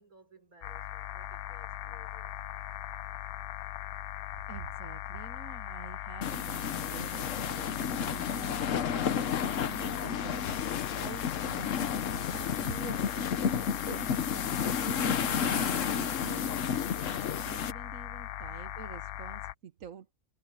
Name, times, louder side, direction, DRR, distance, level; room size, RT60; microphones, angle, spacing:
voice 1, 0.0-2.3, right 3 dB, 85° right, 4.7 m, -59 dB
sound 1, 0.6-19.5, left 13 dB, 85° left, 1.1 m, -40 dB
voice 2, 4.5-20.1, right 6 dB, 70° right, 1.4 m, -47 dB
sound 2, 6.2-17.7, left 7 dB, 65° left, 1.3 m, -32 dB
omnidirectional pair, 1.5 m